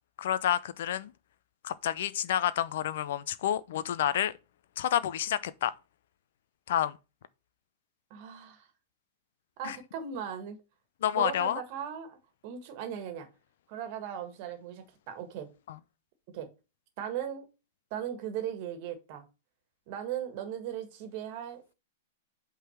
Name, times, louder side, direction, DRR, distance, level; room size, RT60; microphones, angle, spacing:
voice 1, 0.2-1.1 1.6-4.3 4.8-5.7 6.7-7.0 9.6-9.8 11.0-11.6, left 11 dB, 65° left, 0.5 m, -29 dB
voice 2, 8.1-8.7 9.6-10.6 11.1-12.2 12.4-13.3 13.7-15.5 16.3-16.5 17.0-17.5 17.9-19.3 19.9-21.7, right 9 dB, 50° right, 1.6 m, -38 dB
5.5 x 3.8 x 5.7 m
hypercardioid pair, 110°, 0 cm